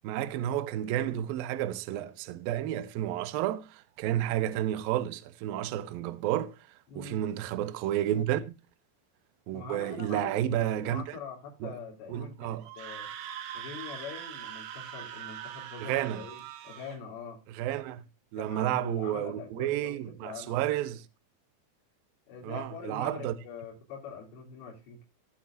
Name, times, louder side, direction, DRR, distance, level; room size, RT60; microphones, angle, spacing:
voice 1, 0.0-6.6 7.0-8.4 9.5-11.2 11.6-11.7 12.1-12.6 15.8-16.2 17.5-18.0 18.3-21.1 22.4-23.3, right 12 dB, 85° right, 2.1 m, -31 dB
voice 2, 6.9-7.2 9.5-13.1 13.5-17.4 18.4-20.6 22.3-25.0, left 5 dB, 55° left, 5.0 m, -44 dB
Screaming, 12.6-17.0, right 10 dB, 70° right, 2.8 m, -42 dB
17.0 x 7.7 x 2.6 m
omnidirectional pair, 5.4 m